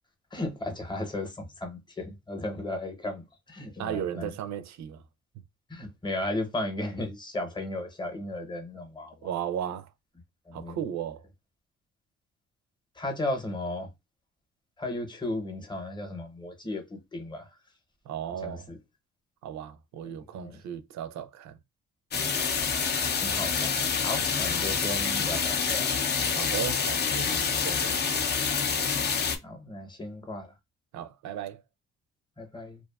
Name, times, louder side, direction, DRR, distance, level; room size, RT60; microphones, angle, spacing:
voice 1, 0.3-4.3 5.7-9.3 10.5-10.8 13.0-13.9 14.8-17.5 18.4-18.8 20.4-20.6 23.2-23.7 24.0-25.9 29.4-30.5 32.4-32.8, left 1 dB, 15° left, 0.8 m, -35 dB
voice 2, 3.8-5.0 9.2-9.9 10.5-11.2 18.1-18.7 19.4-21.6 26.3-28.3 30.9-31.6, right 9 dB, 65° right, 0.5 m, -35 dB
sound 1, 22.1-29.4, left 6 dB, 35° left, 0.4 m, -27 dB
2.5 x 2.3 x 2.3 m
cardioid pair, 90°, 30 cm